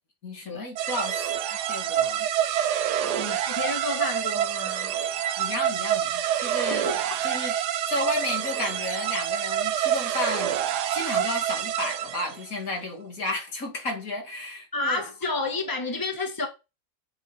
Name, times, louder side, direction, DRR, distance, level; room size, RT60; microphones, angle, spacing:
voice 1, 0.2-2.3 3.0-3.3 5.4-6.9 7.2-7.5 7.9-10.6 10.9-15.0, left 2 dB, 55° left, 2.7 m, -33 dB
sound 1, 0.8-12.4, right 10 dB, 80° right, 1.3 m, -27 dB
voice 2, 3.0-4.9 6.7-7.2 14.7-16.5, left 3 dB, 10° left, 1.9 m, -31 dB
7.9 x 7.7 x 4.2 m
omnidirectional pair, 1.7 m